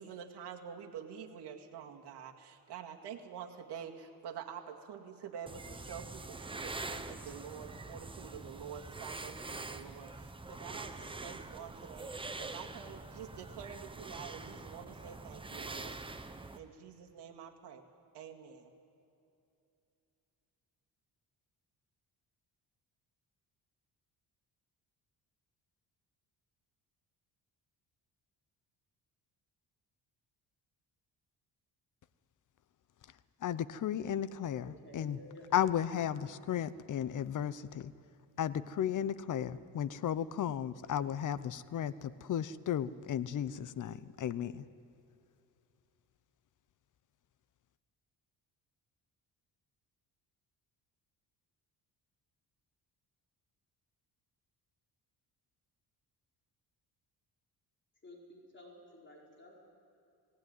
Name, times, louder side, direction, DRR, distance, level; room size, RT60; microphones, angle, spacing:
voice 1, 0.0-16.0 16.6-17.8 18.1-18.7, right 8 dB, 75° right, 2 dB, 2.1 m, -47 dB
sound 1, 5.5-16.6, right 3 dB, 15° right, 0.8 m, -45 dB
voice 2, 33.4-35.2 35.5-37.9 38.4-44.6, left 9 dB, 50° left, 15 dB, 0.8 m, -34 dB
voice 3, 34.6-35.5 58.0-59.6, left 1 dB, 30° left, -3 dB, 5.1 m, -54 dB
18.5 x 18.0 x 9.5 m, 2.7 s
cardioid pair, 115°, 41 cm